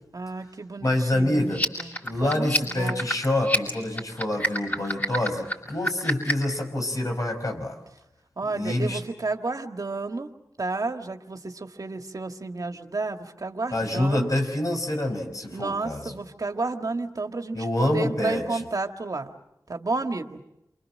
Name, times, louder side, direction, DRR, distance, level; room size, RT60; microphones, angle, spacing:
voice 1, 0.1-2.0 2.2-3.0 8.4-10.3 10.6-14.3 15.5-19.4 19.7-20.4, right 3 dB, 60° right, 5 dB, 1.8 m, -31 dB
voice 2, 0.8-1.6 2.0-7.8 8.4-9.0 13.7-16.2 17.5-18.6, left 1 dB, 55° left, 4 dB, 5.7 m, -26 dB
sound 1, 1.5-6.5, left 1 dB, 25° left, 7.4 m, -27 dB
28.5 x 25.0 x 7.6 m, 0.86 s
wide cardioid pair, 50°, 7 cm